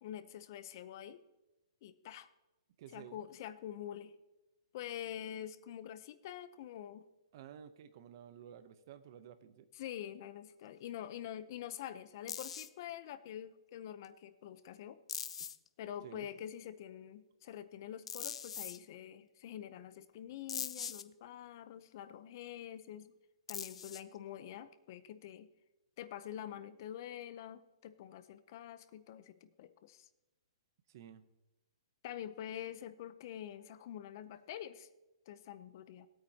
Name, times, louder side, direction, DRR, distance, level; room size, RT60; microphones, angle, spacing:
voice 1, 0.0-1.2 1.8-2.3 2.9-4.1 4.7-7.0 9.7-15.0 15.8-23.1 23.5-25.5 26.0-30.1 32.0-34.9 35.3-36.1, left 10 dB, 40° left, 12 dB, 0.6 m, -46 dB
voice 2, 2.8-3.2 7.3-9.7 16.0-16.3 30.9-31.2, right 9 dB, 40° right, 11 dB, 0.7 m, -53 dB
sound 1, 12.3-12.7 14.0-14.1 15.1-15.7 18.1-18.8 20.5-21.0 23.5-24.2, left 7 dB, 90° left, 0.6 m, -41 dB
18.5 x 8.7 x 2.8 m, 1.0 s
hypercardioid pair, 165°, 3 cm